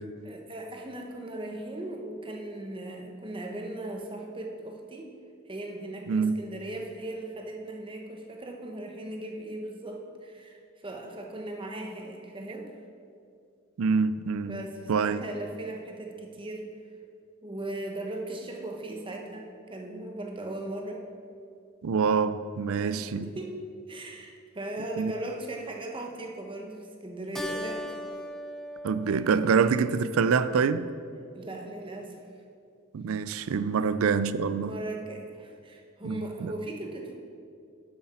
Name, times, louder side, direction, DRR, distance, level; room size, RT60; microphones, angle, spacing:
voice 1, 0.2-5.1 5.5-12.7 14.5-16.7 17.4-21.1 22.8-28.0 31.3-32.2 33.8-33.9 34.5-37.1, right 1 dB, 25° right, 1.0 m, -38 dB
voice 2, 6.1-6.4 13.8-14.6 14.9-15.2 21.8-23.3 25.0-25.1 28.8-30.9 32.9-34.7 36.0-36.5, right 5 dB, 75° right, 0.4 m, -26 dB
Keyboard (musical), 27.3-30.2, left 1 dB, ahead, 0.3 m, -39 dB
9.7 x 7.9 x 4.3 m
head